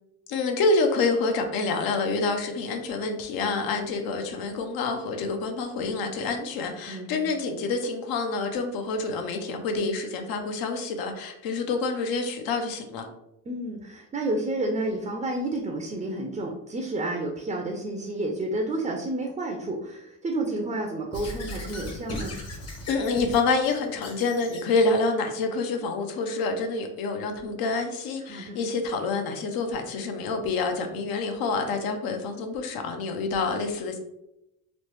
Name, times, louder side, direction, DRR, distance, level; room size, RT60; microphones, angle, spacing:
voice 1, 0.3-13.1 22.9-34.0, left 3 dB, 85° left, 5 dB, 0.6 m, -27 dB
voice 2, 6.9-7.3 13.5-22.4 28.2-28.7, right 2 dB, 20° right, 2 dB, 0.3 m, -30 dB
Squeak / Writing, 21.1-24.9, left 1 dB, 45° left, 0.9 m, -38 dB
3.0 x 2.0 x 3.1 m, 0.86 s
cardioid pair, 95°, 35 cm